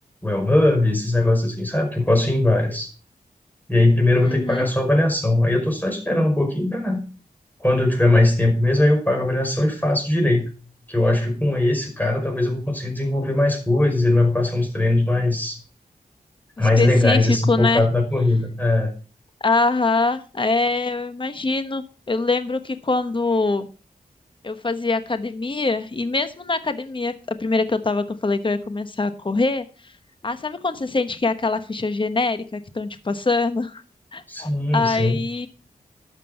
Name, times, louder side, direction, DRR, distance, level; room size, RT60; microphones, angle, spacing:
voice 1, 0.2-2.9 3.7-7.0 7.6-10.5 10.9-15.6 16.6-18.9 34.3-35.2, left 1 dB, 10° left, 3 dB, 5.3 m, -20 dB
voice 2, 4.2-4.7 16.6-17.8 19.4-23.7 24.4-29.9 30.2-33.8 34.1-35.5, left 3 dB, 35° left, 10 dB, 1.1 m, -24 dB
12.0 x 7.6 x 5.6 m, 0.36 s
wide cardioid pair, 80°, 15 cm